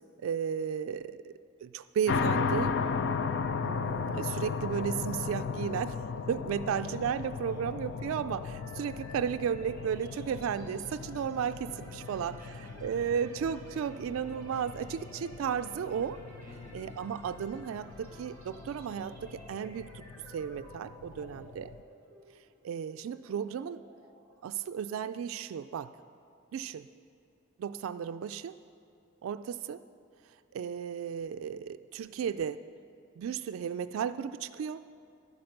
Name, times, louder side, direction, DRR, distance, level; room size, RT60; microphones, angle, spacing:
voice 1, 0.2-1.3 1.6-2.7 3.6-6.0 6.3-12.4 12.8-16.2 16.7-20.0 20.3-21.7 22.6-23.8 24.4-25.9 26.5-26.9 27.6-28.5 29.2-29.8 30.5-32.6 33.2-34.8, right 8 dB, 85° right, 11 dB, 0.3 m, -34 dB
sound 1, 2.1-21.8, left 5 dB, 60° left, 0.4 m, -36 dB
voice 2, 7.5-8.1 12.0-13.2 16.4-16.9 21.1-21.6, equal, 10° right, -3 dB, 3.5 m, -56 dB
sound 2, 7.7-25.5, equal, 10° left, 3.2 m, -54 dB
11.0 x 10.5 x 6.5 m, 2.7 s
head